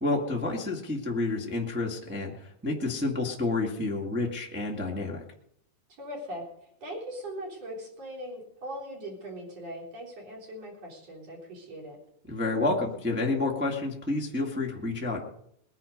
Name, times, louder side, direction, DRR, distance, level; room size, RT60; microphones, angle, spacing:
voice 1, 0.0-5.2 12.3-15.2, left 2 dB, 15° right, -1 dB, 0.3 m, -29 dB
voice 2, 5.9-6.4 6.8-12.0, equal, 45° right, -2 dB, 4.6 m, -40 dB
20.5 x 10.0 x 5.3 m, 0.72 s
omnidirectional pair, 4.4 m